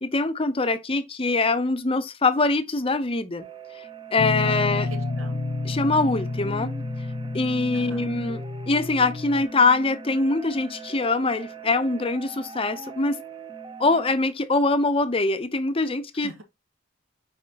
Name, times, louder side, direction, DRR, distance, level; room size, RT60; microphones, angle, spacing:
voice 1, 0.0-3.5 4.1-4.9 5.7-6.7 7.3-8.4 8.7-13.2 13.8-16.3, left 3 dB, 25° left, 0.6 m, -23 dB
sound 1, 3.4-14.1, right 3 dB, 25° right, 0.7 m, -40 dB
Guitar, 4.2-9.4, left 3 dB, 75° left, 0.6 m, -30 dB
voice 2, 4.4-5.5 7.7-8.1 16.1-16.4, right 2 dB, 90° right, 2.0 m, -42 dB
7.5 x 4.8 x 2.8 m
head